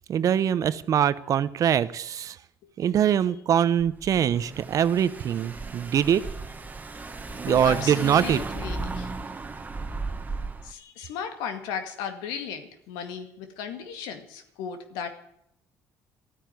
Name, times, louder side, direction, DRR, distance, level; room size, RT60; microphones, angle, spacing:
voice 1, 0.1-2.4 2.8-6.2 7.4-8.4, right 9 dB, 55° right, 16 dB, 0.8 m, -23 dB
Car / Engine, 3.8-10.7, right 3 dB, 25° right, 1.4 m, -35 dB
voice 2, 7.5-9.1 10.6-15.1, left 7 dB, 85° left, 7 dB, 2.1 m, -35 dB
13.5 x 9.4 x 9.2 m, 0.76 s
supercardioid pair, 80°, 7 cm